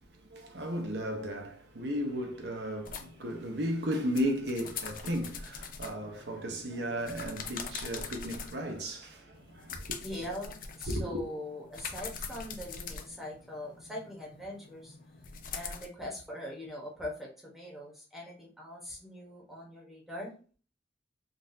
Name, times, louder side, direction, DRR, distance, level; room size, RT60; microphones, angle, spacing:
voice 1, 0.0-10.0 10.9-11.1, equal, 65° right, 0.8 m, -35 dB
sound 1, 2.9-8.8 9.3-15.9, left 5 dB, 50° left, 0.5 m, -44 dB
voice 2, 10.0-15.0 15.5-20.4, left 1 dB, ahead, 1.0 m, -42 dB
3.9 x 2.5 x 2.6 m
head